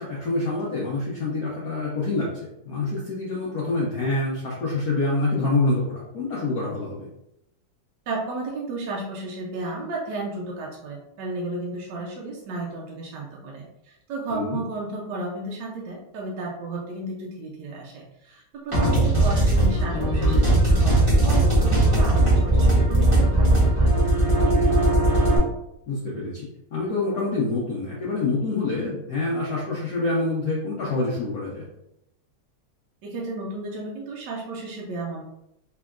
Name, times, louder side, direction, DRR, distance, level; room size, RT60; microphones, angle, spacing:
voice 1, 0.0-2.3 2.6-7.1 14.3-14.6 25.9-26.5 26.7-31.6, left 2 dB, 70° left, -5 dB, 0.8 m, -26 dB
voice 2, 8.1-24.4 33.0-35.2, right 2 dB, 75° right, -3 dB, 1.0 m, -33 dB
sound 1, 18.7-25.4, right 1 dB, 25° right, 0.8 m, -19 dB
3.7 x 3.3 x 2.4 m, 0.83 s
omnidirectional pair, 2.4 m